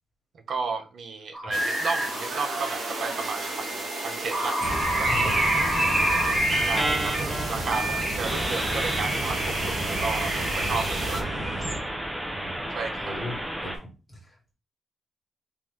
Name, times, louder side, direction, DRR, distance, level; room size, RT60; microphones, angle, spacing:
voice 1, 0.5-4.6 5.0-5.5 6.6-11.3 12.7-13.3, right 4 dB, 55° right, 0.6 m, -33 dB
sound 1, 1.3-2.3 3.2-13.8, right 1 dB, 10° right, 0.6 m, -31 dB
sound 2, 1.5-11.2, right 2 dB, 90° right, 1.2 m, -34 dB
sound 3, 4.6-11.8, right 1 dB, 35° right, 1.0 m, -28 dB
voice 2, 5.9-6.2 12.3-12.6 13.0-13.3 13.6-13.9, left 1 dB, 10° left, 1.6 m, -37 dB
3.8 x 2.8 x 3.1 m
wide cardioid pair, 165°, 0 cm